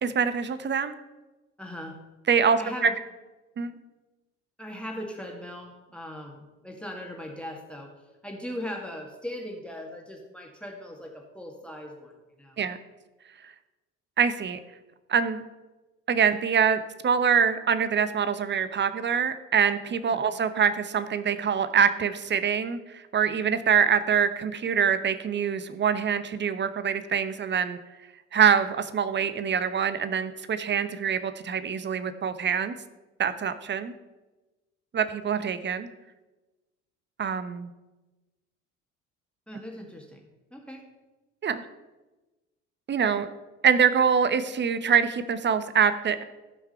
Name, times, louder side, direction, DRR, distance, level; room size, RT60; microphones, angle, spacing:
voice 1, 0.0-0.9 2.3-2.9 3.6-3.7 12.6-12.8 13.4-13.5 14.2-14.6 15.1-15.4 16.1-27.8 28.3-32.7 33.2-33.9 34.9-35.9 37.2-37.7 41.4-41.6 42.9-43.3 43.6-46.2, right 7 dB, 25° right, 12 dB, 0.9 m, -24 dB
voice 2, 1.6-2.0 2.6-2.9 4.6-7.9 8.2-12.1 12.4-12.6 20.1-20.2 39.5-40.8, left 1 dB, 5° left, 2 dB, 1.9 m, -39 dB
14.5 x 5.9 x 5.6 m, 1.1 s
figure-of-eight pair, 55°, 40 cm